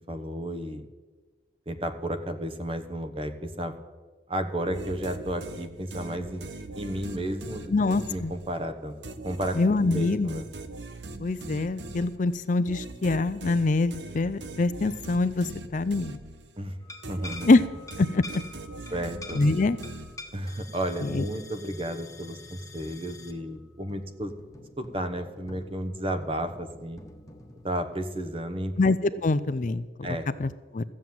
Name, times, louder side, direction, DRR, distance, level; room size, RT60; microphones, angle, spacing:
voice 1, 0.1-0.8 1.7-3.7 4.3-6.4 6.7-8.9 9.2-10.5 16.6-16.8 17.1-17.5 18.9-19.4 20.3-24.3 24.8-27.0 27.6-28.7 29.1-29.2 30.0-30.3, right 1 dB, 30° right, 8 dB, 1.0 m, -32 dB
sound 1, 4.7-8.6 9.0-16.7 17.0-20.5, right 2 dB, 70° right, 1.0 m, -41 dB
voice 2, 7.7-8.3 9.6-10.4 11.2-16.2 17.4-17.6 18.0-18.4 19.3-19.8 21.0-21.3 28.8-29.9 30.4-30.8, left 3 dB, 45° left, 14 dB, 0.5 m, -24 dB
sound 2, 16.8-27.7, left 2 dB, 20° left, 1.3 m, -47 dB
14.0 x 7.4 x 9.3 m, 1.3 s
head